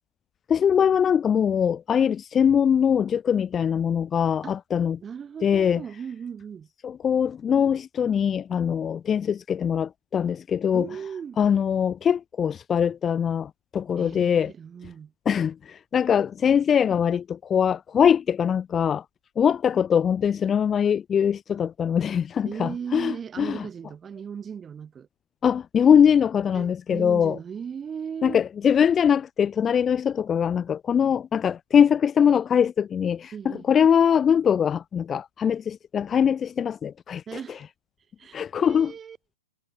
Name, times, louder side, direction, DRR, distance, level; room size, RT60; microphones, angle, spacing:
voice 1, 0.5-5.0 5.4-5.8 6.8-10.9 11.4-14.5 15.2-19.0 19.4-23.6 25.4-27.4 28.2-37.2 38.3-38.9, left 8 dB, 15° left, 1.3 m, -22 dB
voice 2, 5.0-6.7 10.7-11.4 14.0-15.1 22.4-25.1 26.5-28.4 33.3-33.6 37.3-37.7 38.2-39.2, right 7 dB, 15° right, 5.1 m, -37 dB
figure-of-eight pair, 115°, 0 cm